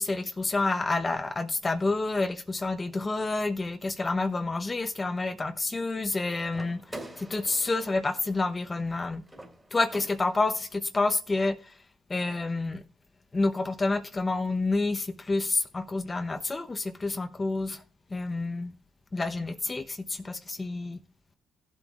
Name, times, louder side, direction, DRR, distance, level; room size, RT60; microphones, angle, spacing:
voice 1, 0.0-6.8 7.2-9.2 9.7-11.6 12.1-12.8 13.3-17.8 18.1-18.7 19.1-21.0, left 3 dB, 25° left, 0.9 m, -29 dB
sound 1, 6.5-10.6, right 1 dB, 10° right, 2.5 m, -46 dB
16.0 x 7.9 x 2.5 m
cardioid pair, 90°, 0 cm